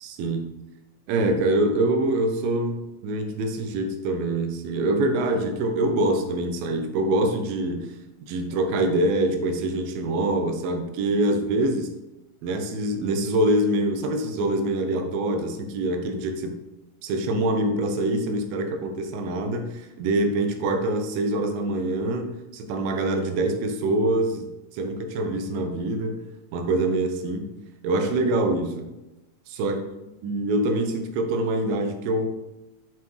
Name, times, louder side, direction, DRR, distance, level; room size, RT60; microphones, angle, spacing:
voice 1, 1.1-8.0 8.3-11.9 12.4-16.6 17.0-26.2 26.5-27.5 27.8-28.9 29.5-29.8 30.2-32.3, right 1 dB, 85° right, 6 dB, 2.6 m, -25 dB
7.3 x 5.8 x 3.2 m, 0.97 s
omnidirectional pair, 4.1 m